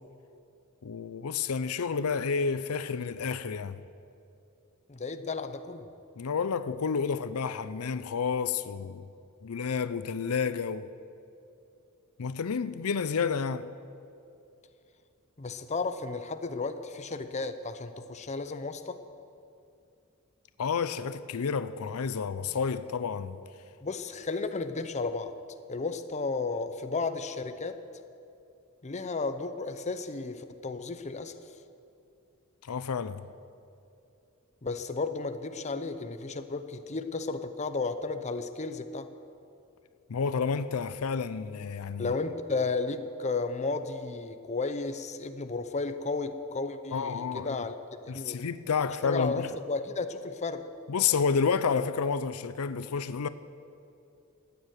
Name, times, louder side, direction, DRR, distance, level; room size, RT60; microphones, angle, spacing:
voice 1, 0.8-3.8 6.2-9.1 9.4-10.9 12.2-13.7 20.6-23.4 32.6-33.2 40.1-42.1 46.9-47.6 48.1-49.5 50.9-53.3, left 5 dB, 85° left, 0.5 m, -30 dB
voice 2, 4.9-5.9 15.4-19.0 23.8-25.4 25.7-27.8 28.8-31.4 34.6-39.1 42.0-47.7 48.1-48.4 49.0-50.7, left 3 dB, 30° left, 0.7 m, -33 dB
14.5 x 9.3 x 9.3 m
head